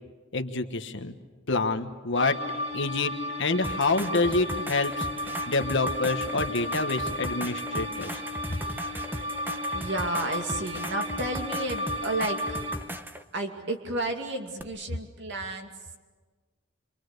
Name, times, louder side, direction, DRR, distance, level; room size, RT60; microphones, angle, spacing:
voice 1, 0.3-1.1 1.5-2.4 2.7-3.1 3.4-8.2, left 3 dB, 65° left, 7 dB, 1.4 m, -27 dB
sound 1, 2.1-12.8, left 1 dB, 40° right, 5.9 m, -33 dB
sound 2, 3.6-13.2 14.6-14.7, right 1 dB, 10° right, 0.8 m, -38 dB
voice 2, 8.8-12.6 13.3-16.0, right 2 dB, 60° right, 3 dB, 2.5 m, -33 dB
27.5 x 23.5 x 6.7 m, 1.4 s
head